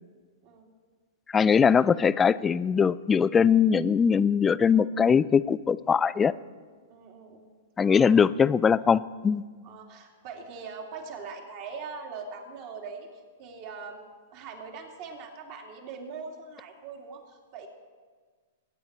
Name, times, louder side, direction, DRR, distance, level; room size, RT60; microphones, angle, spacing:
voice 1, 1.3-6.3 7.8-9.4, left 6 dB, 15° left, 18 dB, 0.3 m, -21 dB
voice 2, 6.9-7.5 7.8-8.2 9.6-13.1 13.4-14.0 14.3-17.7, right 5 dB, 50° right, 1 dB, 2.7 m, -41 dB
22.0 x 9.3 x 4.3 m, 1.5 s
hypercardioid pair, 125°, 0 cm